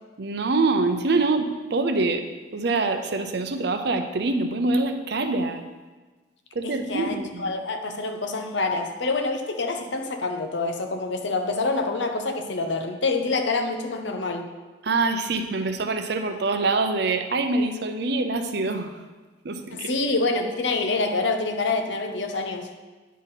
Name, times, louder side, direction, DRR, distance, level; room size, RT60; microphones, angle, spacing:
voice 1, 0.2-2.3 2.5-5.7 6.5-7.5 14.8-19.0 19.4-20.0, right 3 dB, 60° right, 7 dB, 0.6 m, -25 dB
voice 2, 6.6-14.5 19.7-22.7, left 3 dB, 75° left, 5 dB, 0.8 m, -26 dB
9.4 x 4.1 x 5.6 m, 1.3 s
head